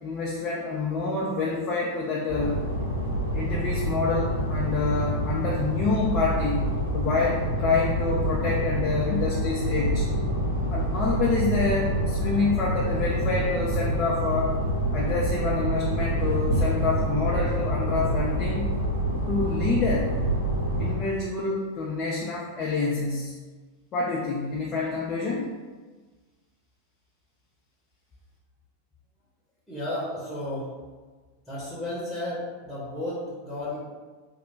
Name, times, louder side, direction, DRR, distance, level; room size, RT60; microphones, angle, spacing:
voice 1, 0.0-2.6 3.3-6.6 6.9-10.1 10.7-14.5 14.9-18.7 19.3-20.1 20.8-23.4 23.9-25.5, left 3 dB, 30° left, -4 dB, 0.5 m, -27 dB
sound 1, 2.3-21.0, equal, 75° left, 0.6 m, -27 dB
voice 2, 29.7-30.8 31.4-33.8, left 1 dB, 5° left, -8 dB, 1.1 m, -33 dB
3.3 x 2.2 x 3.9 m, 1.4 s
figure-of-eight pair, 90°, 0 cm